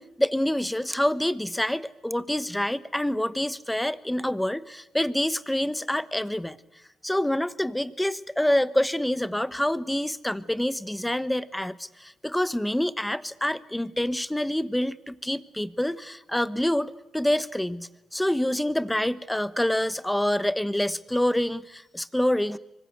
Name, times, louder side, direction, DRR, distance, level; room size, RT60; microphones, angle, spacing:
voice 1, 0.0-6.6 7.0-22.6, left 1 dB, 5° left, 15 dB, 1.1 m, -27 dB
25.0 x 23.5 x 8.1 m, 0.92 s
cardioid pair, 90°, 0 cm